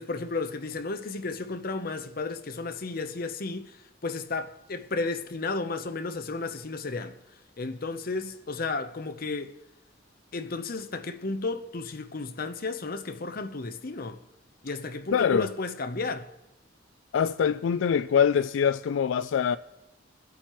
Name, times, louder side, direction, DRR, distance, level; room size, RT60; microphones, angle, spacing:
voice 1, 0.0-3.8 4.0-7.2 7.6-9.5 10.3-14.2 14.6-16.3, left 3 dB, 50° left, 0.8 m, -33 dB
voice 2, 15.1-15.5 17.1-19.6, left 7 dB, 80° left, 0.3 m, -24 dB
25.5 x 8.5 x 3.1 m
head